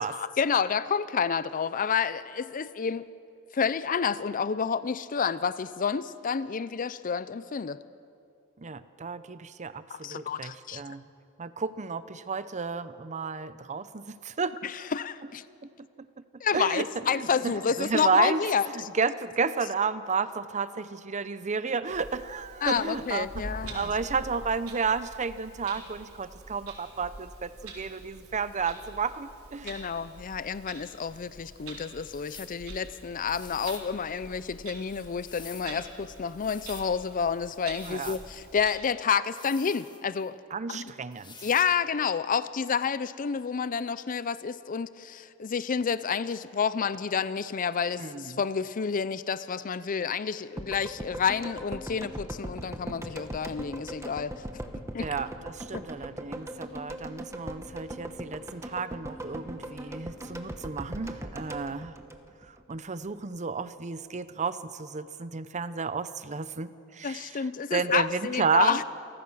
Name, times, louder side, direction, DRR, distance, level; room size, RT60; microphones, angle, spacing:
voice 1, 0.0-3.1 3.5-7.8 9.9-10.8 14.6-15.4 16.4-18.6 22.6-23.9 29.6-40.4 40.7-40.9 41.4-54.3 54.9-55.1 55.7-55.8 67.0-68.8, left 6 dB, 40° left, 15 dB, 0.5 m, -29 dB
voice 2, 8.6-11.0 11.4-14.6 16.0-16.1 16.5-17.3 17.8-18.4 18.7-29.9 37.8-38.1 40.5-41.5 48.0-48.4 55.0-62.0 62.5-68.8, right 5 dB, 35° right, 14 dB, 0.7 m, -32 dB
Clock, 21.9-38.7, right 2 dB, 75° right, 4.2 m, -46 dB
sound 1, 32.0-32.6 33.3-33.9 34.9-35.7 36.3-36.9 37.7-38.3 39.2-40.3 41.1-41.7, left 5 dB, 20° left, 1.4 m, -48 dB
sound 2, 50.6-62.8 63.0-63.1, right 1 dB, 15° right, 1.1 m, -40 dB
28.0 x 15.0 x 6.3 m, 2.5 s
head